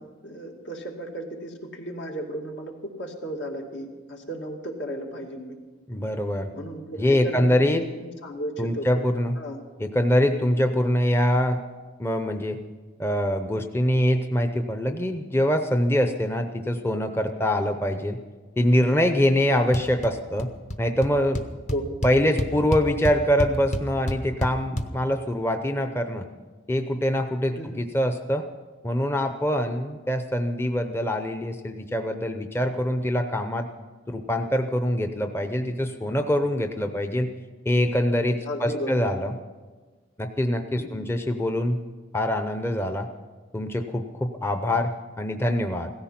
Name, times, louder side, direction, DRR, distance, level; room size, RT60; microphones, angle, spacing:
voice 1, 0.0-5.6 6.5-8.9 9.4-9.6 21.7-21.9 27.5-27.8 38.5-39.1 40.7-41.1, equal, 75° left, 1 dB, 2.5 m, -35 dB
voice 2, 5.9-6.5 7.0-7.8 8.6-9.4 9.8-11.6 12.0-12.6 13.0-18.2 18.6-20.5 20.8-21.4 22.0-26.3 26.7-28.5 28.8-33.7 34.1-37.3 37.7-39.3 40.2-41.8 42.1-43.1 43.5-45.9, equal, 15° left, 7 dB, 0.6 m, -24 dB
sound 1, 19.7-20.1 20.4-20.8 21.0-21.1 21.4-24.9, equal, 40° left, 0.9 m, -28 dB
16.5 x 14.5 x 5.8 m, 1.3 s
head